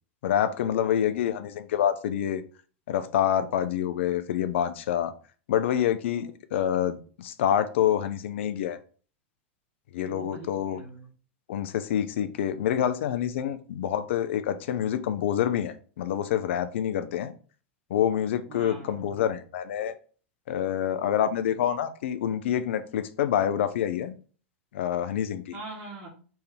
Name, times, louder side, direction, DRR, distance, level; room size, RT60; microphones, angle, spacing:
voice 1, 0.2-2.4 2.9-5.1 5.5-8.8 9.9-10.8 11.5-17.3 17.9-19.9 20.5-24.2 24.7-25.6, left 10 dB, 70° left, 11 dB, 0.6 m, -27 dB
voice 2, 10.0-11.1 18.5-19.1 25.5-26.1, right 2 dB, 55° right, -5 dB, 1.8 m, -42 dB
4.3 x 3.5 x 3.5 m, 0.39 s
hypercardioid pair, 100°, 7 cm